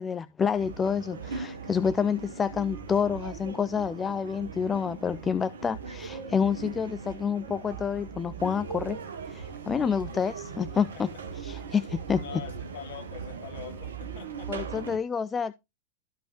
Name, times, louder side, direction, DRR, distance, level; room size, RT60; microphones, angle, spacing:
voice 1, 0.0-9.0 9.3-11.1 11.4-12.2 14.5-15.5, left 6 dB, 20° left, 0.4 m, -28 dB
sound 1, 0.5-15.0, right 6 dB, 65° right, 1.2 m, -39 dB
voice 2, 12.2-15.0, left 9 dB, 50° left, 2.2 m, -45 dB
13.0 x 5.2 x 2.9 m
figure-of-eight pair, 90°, 0 cm